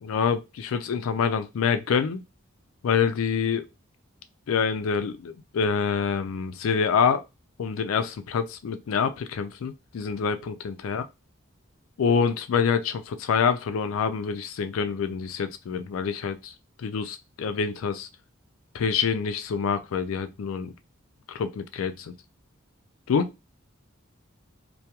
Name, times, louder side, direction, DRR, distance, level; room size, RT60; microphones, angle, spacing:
voice 1, 0.0-2.2 2.8-3.7 4.5-7.2 7.6-11.0 12.0-16.5 16.8-18.1 18.7-20.7 21.3-22.1 23.1-23.3, left 6 dB, 80° left, 0.4 m, -26 dB
2.2 x 2.2 x 2.8 m
head